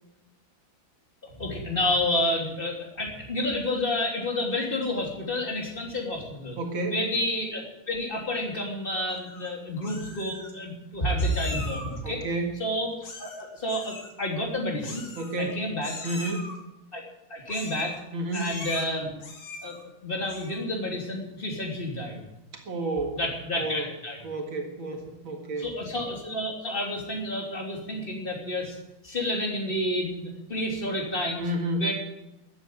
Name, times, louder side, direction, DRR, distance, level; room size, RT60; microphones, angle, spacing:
voice 1, 1.4-6.6 6.9-12.2 12.6-12.9 13.2-15.0 15.4-15.9 16.9-17.0 17.3-18.0 18.3-19.1 19.6-19.7 20.0-22.2 23.1-24.2 25.6-28.8 29.0-31.5 31.8-31.9, left 1 dB, 25° left, 0 dB, 3.4 m, -30 dB
voice 2, 6.6-7.0 12.0-12.6 15.2-15.6 16.0-16.5 18.1-18.6 22.5-23.2 23.6-23.9 24.2-25.7 31.4-31.9, right 2 dB, 75° right, 3 dB, 2.7 m, -30 dB
Meow, 9.1-9.5 9.8-10.5 11.2-12.0 13.0-13.4 13.7-14.1 14.8-15.5 15.8-16.6 17.5-18.0 18.3-18.8 19.2-19.8 20.2-20.6, left 3 dB, 80° left, 3.3 m, -40 dB
14.5 x 9.1 x 9.6 m, 0.93 s
omnidirectional pair, 2.2 m